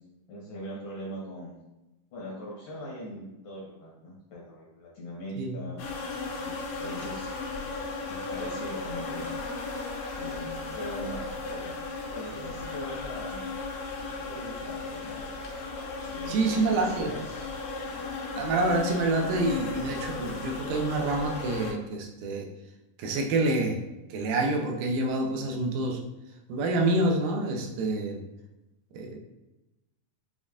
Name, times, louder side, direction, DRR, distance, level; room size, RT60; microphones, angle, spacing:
voice 1, 0.3-1.5 2.1-5.9 6.4-7.4 8.2-9.3 10.2-11.7 12.1-13.5 14.0-15.3 16.0-17.5 18.0-18.2, equal, 70° left, -5 dB, 1.4 m, -41 dB
sound 1, 5.8-21.7, left 3 dB, 85° left, 2.3 m, -36 dB
voice 2, 16.3-17.1 18.4-22.5 23.0-23.8 24.1-26.0 26.5-28.2 28.9-29.2, right 2 dB, 80° right, 3 dB, 2.1 m, -27 dB
7.0 x 2.5 x 2.4 m, 0.99 s
omnidirectional pair, 4.0 m